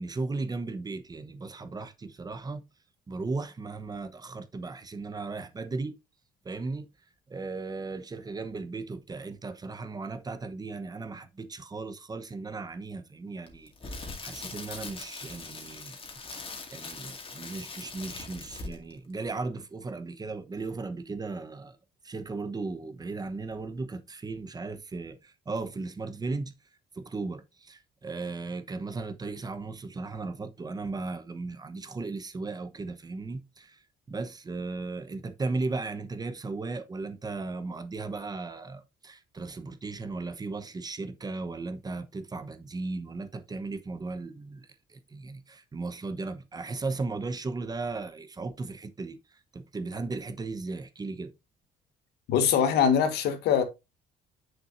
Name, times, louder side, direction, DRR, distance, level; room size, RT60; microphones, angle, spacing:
voice 1, 0.0-2.6 3.1-5.9 6.4-6.9 7.3-16.0 16.3-21.8 22.0-26.5 27.0-33.8 34.1-49.2 49.5-51.3, right 3 dB, 25° right, 0.9 m, -36 dB
Crackle, 13.5-18.9 19.2-19.4, left 3 dB, 35° left, 2.2 m, -41 dB
voice 2, 52.3-53.6, left 8 dB, 80° left, 1.5 m, -23 dB
7.8 x 6.2 x 2.6 m
cardioid pair, 110°, 17 cm